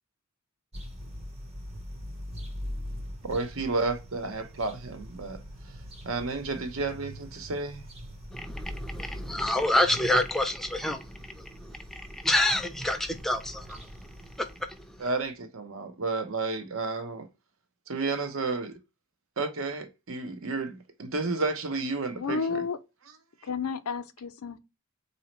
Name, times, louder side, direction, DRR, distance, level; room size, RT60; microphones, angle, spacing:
sound 1, 0.7-15.3, equal, 30° right, 0.7 m, -42 dB
voice 1, 3.2-5.7 6.0-7.9 15.0-17.3 17.9-18.7 19.4-22.6, right 3 dB, 70° right, 0.7 m, -32 dB
voice 2, 8.3-11.0 11.6-13.8 14.4-14.5, left 1 dB, ahead, 0.4 m, -27 dB
voice 3, 22.2-22.8 23.4-24.6, left 5 dB, 85° left, 0.5 m, -31 dB
4.1 x 2.7 x 2.9 m
head